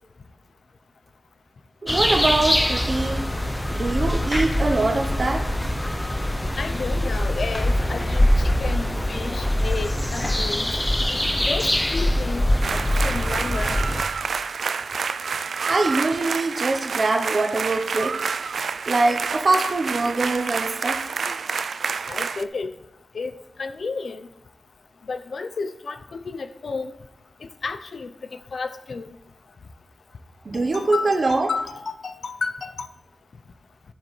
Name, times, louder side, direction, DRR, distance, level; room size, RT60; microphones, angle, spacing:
voice 1, 1.8-3.3 3.7-5.5 15.7-18.2 18.9-21.1 30.4-31.5, right 3 dB, 45° right, 3 dB, 0.7 m, -23 dB
sound 1, 1.9-14.0, left 1 dB, 10° left, 0.5 m, -23 dB
voice 2, 6.6-10.7 11.4-13.8 22.1-22.7 23.1-23.3 23.6-24.3 25.1-26.9 27.4-29.1 30.5-32.9, left 4 dB, 65° left, 10 dB, 0.5 m, -32 dB
sound 2, 12.6-22.4, right 5 dB, 75° right, 0.3 m, -28 dB
11.5 x 7.3 x 3.2 m, 0.89 s
wide cardioid pair, 115°, 0 cm